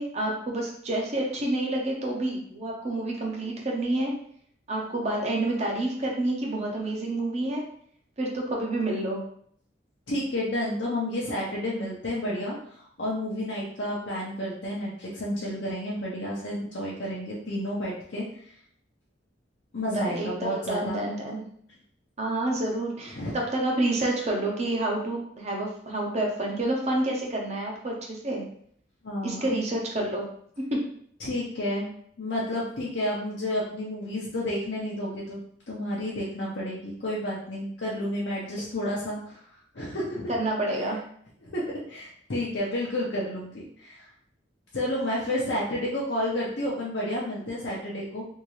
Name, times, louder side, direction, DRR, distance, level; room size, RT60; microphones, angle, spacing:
voice 1, 0.0-4.1 4.7-7.6 8.2-9.2 19.9-21.4 22.2-28.4 29.2-30.2 30.7-30.8 40.3-41.0, right 1 dB, 35° right, -1 dB, 0.7 m, -28 dB
voice 2, 10.1-18.2 19.7-21.0 23.1-23.3 29.0-29.6 31.2-31.9 32.2-35.4 35.7-39.4 39.7-40.3 41.4-44.1 44.7-48.2, left 1 dB, 65° left, -6 dB, 0.7 m, -31 dB
3.6 x 2.5 x 3.1 m, 0.63 s
head